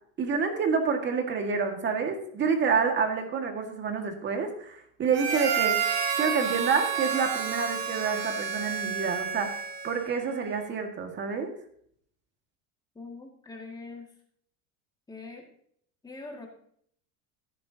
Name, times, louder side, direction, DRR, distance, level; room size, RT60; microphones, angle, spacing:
voice 1, 0.2-5.8 6.2-11.5, right 5 dB, 30° right, 4 dB, 1.9 m, -28 dB
Harmonica, 5.1-10.1, right 7 dB, 45° right, 2.5 m, -30 dB
voice 2, 13.0-14.1 15.1-15.5 16.0-16.5, left 3 dB, 10° left, 1 dB, 2.1 m, -42 dB
14.5 x 10.0 x 2.8 m, 0.64 s
cardioid pair, 150°, 39 cm